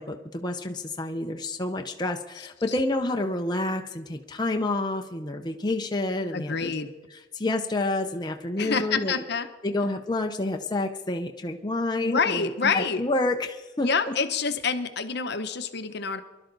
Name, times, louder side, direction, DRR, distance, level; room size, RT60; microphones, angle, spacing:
voice 1, 0.0-6.7 7.3-9.1 9.6-14.1, left 2 dB, 20° left, 3 dB, 0.7 m, -29 dB
voice 2, 6.3-6.9 8.6-9.5 12.0-13.0 13.8-16.2, left 5 dB, 60° left, 9 dB, 0.9 m, -27 dB
24.0 x 12.0 x 4.0 m, 1.1 s
head